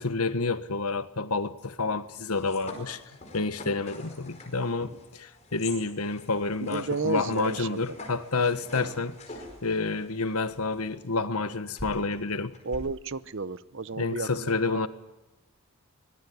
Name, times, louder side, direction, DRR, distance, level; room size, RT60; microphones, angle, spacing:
voice 1, 0.0-3.0 3.3-9.1 9.6-12.5 13.9-14.9, left 3 dB, 90° left, 1.4 m, -29 dB
sound 1, 1.8-11.1 11.8-12.8, left 2 dB, 30° left, 5.1 m, -45 dB
voice 2, 6.7-8.0 12.6-14.9, right 4 dB, 55° right, 0.8 m, -32 dB
24.5 x 19.5 x 9.5 m
head